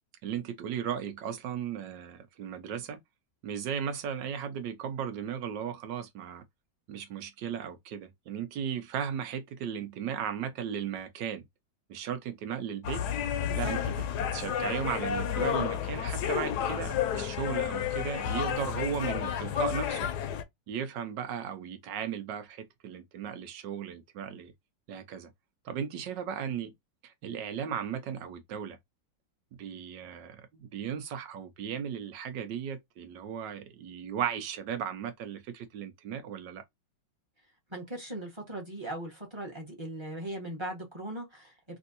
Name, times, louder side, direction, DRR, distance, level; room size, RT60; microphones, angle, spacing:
voice 1, 0.2-3.0 3.4-6.4 6.9-11.5 11.9-13.0 13.6-13.9 14.3-20.1 20.7-24.5 24.9-25.3 25.6-26.7 27.0-28.8 29.5-36.6, right 8 dB, 75° right, 1.4 m, -36 dB
sound 1, 12.8-20.4, left 9 dB, 75° left, 1.1 m, -31 dB
voice 2, 37.7-41.5, right 1 dB, 20° right, 1.1 m, -39 dB
3.5 x 2.6 x 2.6 m
omnidirectional pair, 1.9 m